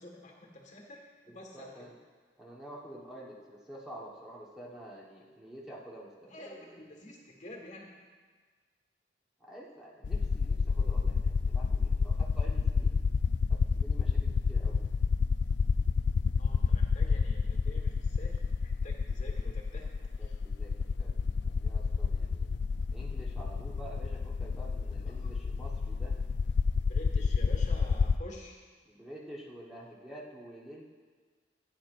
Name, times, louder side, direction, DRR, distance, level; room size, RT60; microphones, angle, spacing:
voice 1, 0.0-1.9 6.2-7.9 16.4-19.9 20.2-20.4 25.0-25.3 26.8-28.6, left 1 dB, 40° left, 0 dB, 1.6 m, -48 dB
voice 2, 1.3-1.9 2.4-6.8 9.5-12.9 13.5-14.8 20.2-20.7 21.0-22.5 22.9-26.2 28.8-30.8, right 1 dB, 5° right, -5 dB, 1.2 m, -48 dB
sound 1, 10.0-28.2, left 5 dB, 75° left, 0.4 m, -29 dB
15.5 x 9.5 x 2.5 m, 1.5 s
head